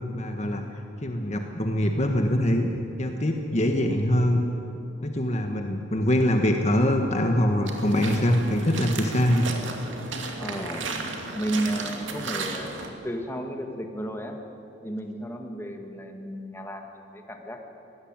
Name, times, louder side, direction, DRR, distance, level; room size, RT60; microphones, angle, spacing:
voice 1, 0.1-0.6 1.0-2.7 3.0-4.4 5.0-9.5, left 1 dB, 35° left, 4 dB, 1.5 m, -23 dB
sound 1, 7.6-12.9, right 3 dB, 75° right, 2.6 m, -34 dB
voice 2, 10.4-12.7 13.0-14.4 14.8-17.6, right 1 dB, 15° left, 3 dB, 1.9 m, -33 dB
22.5 x 18.0 x 8.9 m, 2.8 s
head